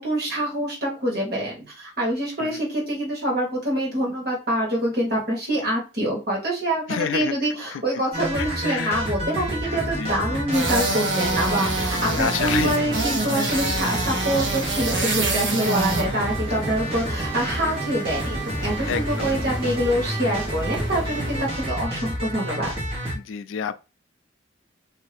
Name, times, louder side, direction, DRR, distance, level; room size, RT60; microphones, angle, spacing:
voice 1, 0.0-22.7, right 1 dB, 50° right, 1.6 m, -25 dB
voice 2, 6.9-7.4 7.7-7.8 8.4-9.0 9.7-10.4 12.0-12.8 18.9-19.4 23.1-23.8, left 7 dB, 75° left, 0.3 m, -29 dB
sound 1, 8.1-23.2, right 1 dB, 30° right, 1.1 m, -29 dB
sound 2, 10.5-21.5, right 2 dB, 65° right, 1.0 m, -28 dB
2.7 x 2.7 x 3.2 m
head